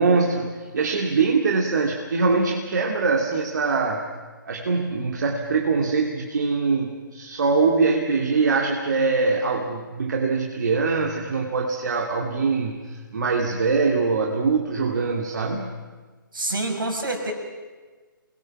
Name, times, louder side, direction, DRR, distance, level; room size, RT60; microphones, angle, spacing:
voice 1, 0.0-4.0 4.5-12.8 13.1-15.7, right 4 dB, 55° right, 2 dB, 2.4 m, -23 dB
voice 2, 16.3-17.3, right 2 dB, 70° right, 3 dB, 5.9 m, -27 dB
28.5 x 21.0 x 6.0 m, 1.4 s
figure-of-eight pair, 140°, 12 cm